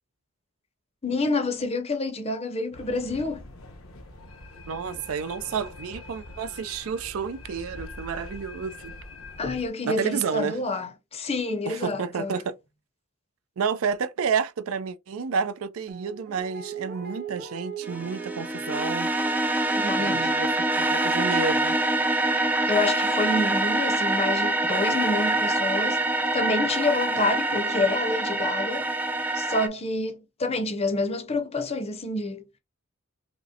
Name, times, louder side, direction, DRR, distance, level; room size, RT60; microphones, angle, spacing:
voice 1, 1.0-3.4 9.4-12.4 19.8-20.3 22.7-26.1 26.3-28.9 29.3-32.4, left 2 dB, 30° left, 0.6 m, -28 dB
sound 1, 2.7-9.7, left 2 dB, 85° left, 0.9 m, -44 dB
voice 2, 4.7-9.0 9.9-10.6 11.6-12.5 13.6-19.1 20.0-21.8, right 6 dB, 80° right, 0.4 m, -30 dB
Guitar, 15.9-22.9 23.2-23.3, right 7 dB, 45° right, 0.7 m, -42 dB
sound 2, 17.8-29.7, right 2 dB, 10° right, 0.3 m, -25 dB
5.0 x 2.1 x 2.7 m
head